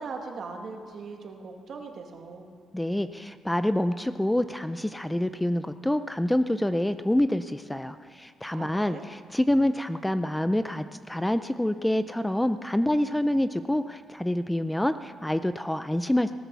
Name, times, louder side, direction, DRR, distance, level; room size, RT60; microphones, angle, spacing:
voice 1, 0.0-2.5 8.5-9.0, right 4 dB, 55° right, 3 dB, 2.1 m, -39 dB
voice 2, 2.7-16.3, left 1 dB, 5° left, 11 dB, 0.4 m, -27 dB
18.0 x 10.0 x 7.0 m, 2.3 s
cardioid pair, 90°, 0 cm